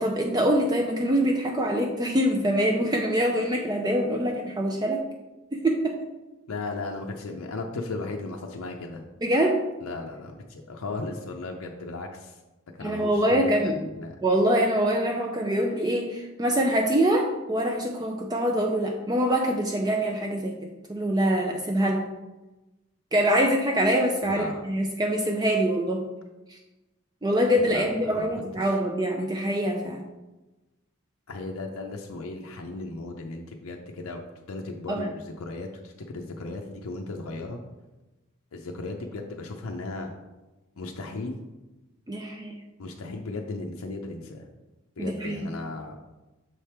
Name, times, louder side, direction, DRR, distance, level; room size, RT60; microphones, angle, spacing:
voice 1, 0.0-5.0 5.5-6.0 9.2-9.6 12.8-13.8 14.2-20.6 20.9-22.0 23.1-26.1 26.5-26.6 27.2-30.0 34.9-35.1 42.1-42.6 45.0-45.5, equal, 20° right, 2 dB, 0.4 m, -24 dB
voice 2, 6.5-9.0 9.8-12.4 12.8-14.1 24.2-24.6 27.7-28.3 28.6-28.7 31.3-34.2 34.5-37.6 38.5-40.1 40.8-41.4 42.8-44.5 45.0-46.0, left 3 dB, 85° left, 2 dB, 0.5 m, -36 dB
6.4 x 3.4 x 4.4 m, 1.1 s
head